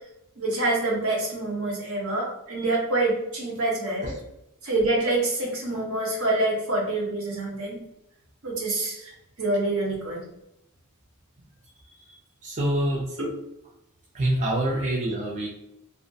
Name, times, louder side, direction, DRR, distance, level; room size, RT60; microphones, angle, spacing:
voice 1, 0.4-4.1 4.6-7.8 8.4-9.1 9.4-10.2 13.2-13.3 14.8-14.9, right 2 dB, 70° right, -2 dB, 0.8 m, -26 dB
voice 2, 12.4-13.1 14.1-15.5, right 1 dB, 35° right, -3 dB, 0.4 m, -26 dB
2.4 x 2.0 x 2.6 m, 0.82 s
head